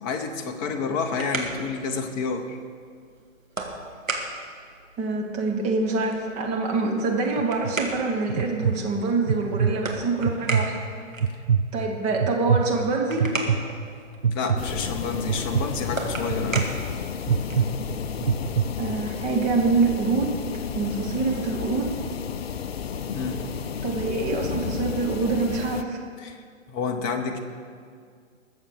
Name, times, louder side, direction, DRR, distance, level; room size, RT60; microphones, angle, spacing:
voice 1, 0.0-2.6 14.3-16.7 23.1-23.4 26.2-27.4, left 5 dB, 20° left, 5 dB, 0.8 m, -29 dB
sound 1, 0.8-17.8, right 2 dB, 90° right, 2.0 m, -37 dB
voice 2, 5.0-10.7 11.7-13.3 18.8-20.3 20.7-21.9 23.8-26.0, right 3 dB, 15° right, 1 dB, 1.5 m, -25 dB
sound 2, 7.4-7.7 8.3-8.8 9.3-9.7 10.2-10.7 11.2-11.6 12.2-12.6 13.2-13.6 14.2-14.6 15.3-15.6 16.3-16.6 17.3-17.7 18.2-18.7, right 7 dB, 45° right, 0.6 m, -22 dB
sound 3, 14.6-25.8, left 7 dB, 50° left, 0.5 m, -32 dB
21.0 x 7.2 x 5.0 m, 2.1 s
figure-of-eight pair, 125°, 39 cm